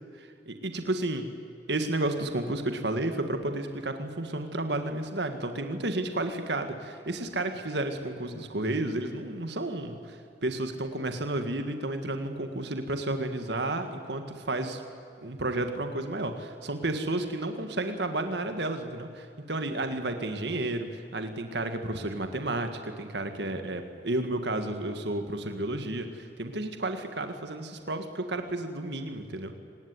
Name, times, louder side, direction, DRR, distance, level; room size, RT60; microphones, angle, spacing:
voice 1, 0.1-1.3 1.7-14.8 15.2-29.5, right 2 dB, 65° right, 7 dB, 1.7 m, -32 dB
25.5 x 20.0 x 9.6 m, 2.5 s
head